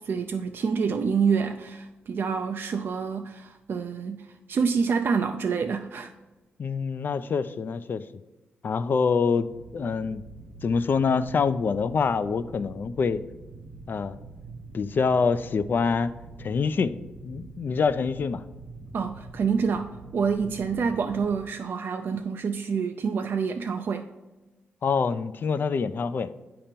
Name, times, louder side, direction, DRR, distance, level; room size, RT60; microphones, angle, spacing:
voice 1, 0.0-6.1 18.9-24.1, right 5 dB, 55° right, 6 dB, 0.3 m, -27 dB
voice 2, 6.6-8.0 8.6-9.5 9.7-10.2 10.6-13.2 13.9-14.2 14.7-18.4 24.8-26.3, left 5 dB, 50° left, 13 dB, 0.3 m, -25 dB
sound 1, 9.5-21.4, right 3 dB, 90° right, 1.0 m, -45 dB
8.5 x 2.9 x 5.2 m, 1.1 s
cardioid pair, 85°, 4 cm